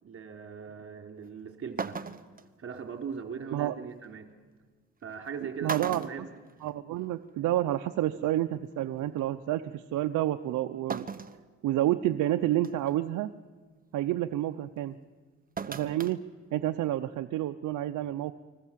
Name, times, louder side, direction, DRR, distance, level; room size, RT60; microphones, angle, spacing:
voice 1, 0.0-2.1 2.6-4.3 5.0-6.3, right 6 dB, 50° right, 3 dB, 3.6 m, -40 dB
sound 1, 1.3-1.4 1.8-2.4 4.0-4.1 5.1-5.3 5.7-7.1 7.4-7.5 8.7-8.8 10.9-11.4 12.0-12.1 12.6-12.9 15.6-16.2 16.5-16.6, right 5 dB, 30° right, 1.2 m, -37 dB
voice 2, 5.6-6.1 6.6-11.1 11.6-13.3 13.9-15.0 15.7-16.2 16.5-18.3, right 13 dB, 80° right, 8 dB, 0.8 m, -29 dB
29.5 x 21.5 x 7.6 m, 1.4 s
cardioid pair, 90°, 30 cm